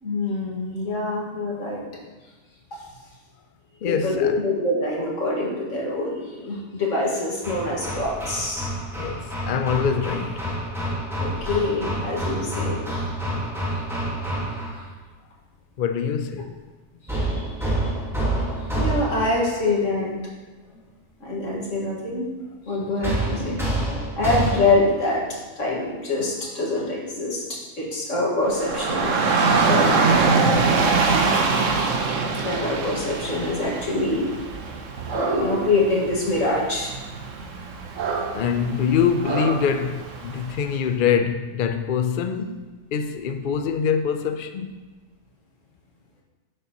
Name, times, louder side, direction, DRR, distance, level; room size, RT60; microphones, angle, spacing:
voice 1, 0.0-1.8 3.8-8.7 11.2-12.8 17.3-17.9 18.7-20.1 21.2-22.3 22.7-23.6 24.2-25.3 25.6-29.1 29.7-30.0 32.4-34.3 35.1-36.9, left 2 dB, 80° left, 2.1 m, -25 dB
voice 2, 3.8-4.4 8.9-10.5 15.8-16.5 38.3-44.9, left 7 dB, 55° left, 0.6 m, -24 dB
Hammer, 7.4-14.9 17.1-19.5 23.0-25.0, right 1 dB, ahead, 1.6 m, -28 dB
Dog / Rain, 28.5-40.7, right 4 dB, 80° right, 1.2 m, -24 dB
10.5 x 6.6 x 3.0 m
omnidirectional pair, 1.3 m